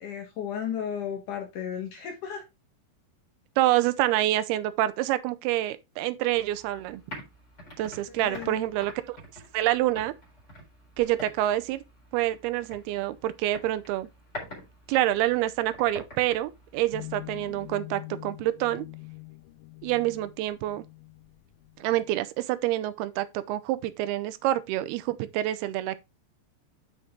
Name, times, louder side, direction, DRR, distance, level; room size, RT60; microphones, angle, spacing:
voice 1, 0.0-2.4 8.1-8.7, left 8 dB, 65° left, 2.3 m, -34 dB
voice 2, 3.6-7.0 7.8-9.2 9.5-10.1 11.0-11.8 12.1-14.1 14.9-18.9 19.8-20.8 21.8-26.0, right 14 dB, 80° right, 2.6 m, -27 dB
sound 1, 6.3-17.7, equal, 15° left, 3.8 m, -47 dB
sound 2, 16.9-22.2, left 27 dB, 85° left, 2.1 m, -44 dB
8.0 x 6.2 x 3.6 m
omnidirectional pair, 4.7 m